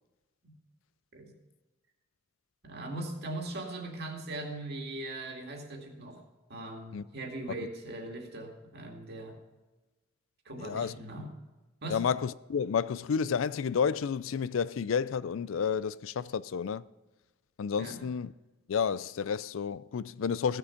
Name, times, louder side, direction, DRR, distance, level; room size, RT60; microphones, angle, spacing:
voice 1, 2.6-6.2 6.5-9.4 10.5-11.3 11.8-12.0 17.8-18.0, right 2 dB, 55° right, 2.3 m, -40 dB
voice 2, 10.6-10.9 11.9-16.8 17.6-18.3 18.7-20.6, left 6 dB, 75° left, 0.4 m, -31 dB
15.5 x 6.9 x 5.8 m
head